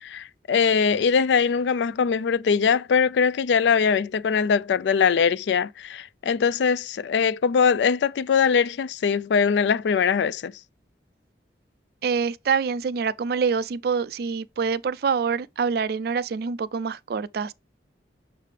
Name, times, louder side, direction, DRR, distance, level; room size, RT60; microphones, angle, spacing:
voice 1, 0.0-10.5, left 6 dB, 80° left, 0.4 m, -22 dB
voice 2, 12.0-17.5, right 5 dB, 60° right, 0.3 m, -26 dB
6.6 x 5.0 x 3.2 m
head